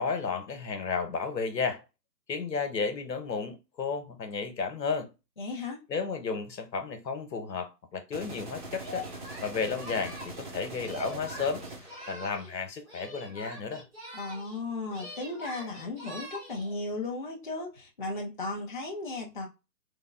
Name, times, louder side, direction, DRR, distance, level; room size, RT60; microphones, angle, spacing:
voice 1, 0.0-1.8 2.3-5.1 5.6-9.1 9.4-13.8, left 5 dB, 80° left, 1.2 m, -33 dB
voice 2, 5.4-5.8 14.1-19.5, left 3 dB, 30° left, 0.5 m, -35 dB
sound 1, 8.1-12.1, right 2 dB, 30° right, 0.7 m, -42 dB
Singing, 8.7-12.6 12.8-14.6 14.9-16.8, equal, 5° right, 1.0 m, -44 dB
3.5 x 2.1 x 3.8 m
hypercardioid pair, 155°, 50 cm